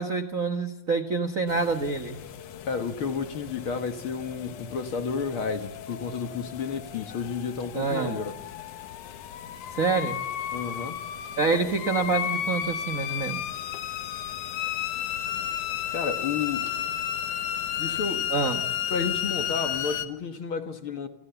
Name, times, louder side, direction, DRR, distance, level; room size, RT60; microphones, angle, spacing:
voice 1, 0.0-2.2 7.7-8.2 9.7-10.2 11.4-13.4 18.3-18.7, right 4 dB, 45° right, 1.1 m, -27 dB
sound 1, 1.5-20.1, left 10 dB, 80° left, 2.7 m, -33 dB
voice 2, 2.7-8.4 10.5-11.0 11.6-11.7 15.9-16.7 17.8-18.3 18.9-21.1, left 5 dB, 50° left, 2.1 m, -31 dB
28.5 x 27.5 x 7.0 m
omnidirectional pair, 3.5 m